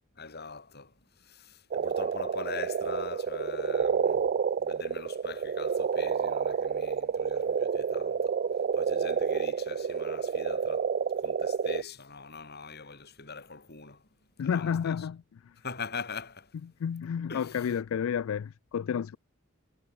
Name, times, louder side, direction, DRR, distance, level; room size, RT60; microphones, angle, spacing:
voice 1, 0.2-14.0 14.4-15.1 15.6-16.6 17.3-17.9, left 4 dB, 50° left, 6.9 m, -43 dB
sound 1, 1.7-11.8, right 6 dB, 45° right, 0.4 m, -29 dB
voice 2, 14.4-15.4 16.8-19.2, left 7 dB, 70° left, 0.3 m, -31 dB
head